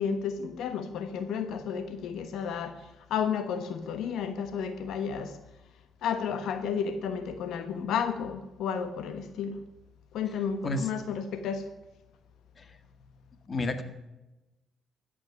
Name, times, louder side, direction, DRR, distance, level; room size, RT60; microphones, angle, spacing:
voice 1, 0.0-5.4 6.0-9.6 10.1-11.7, left 7 dB, 80° left, 10 dB, 1.2 m, -32 dB
voice 2, 13.5-13.8, left 2 dB, 40° left, 10 dB, 1.8 m, -31 dB
14.5 x 8.5 x 9.7 m, 1.0 s
cardioid pair, 90°, 0 cm